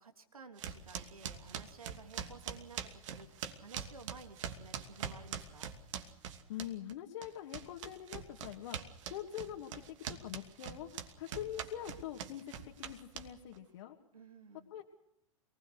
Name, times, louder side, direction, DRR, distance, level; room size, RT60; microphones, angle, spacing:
voice 1, 0.0-5.7 14.1-14.7, right 4 dB, 85° right, 6 dB, 3.1 m, -54 dB
sound 1, 0.6-6.9 7.2-13.6, right 8 dB, 60° right, 2.8 m, -43 dB
voice 2, 6.5-8.8 9.1-10.0 10.2-14.0 14.7-14.8, left 11 dB, 60° left, 0 dB, 2.5 m, -44 dB
27.5 x 20.0 x 6.5 m, 0.79 s
hypercardioid pair, 105°, 18 cm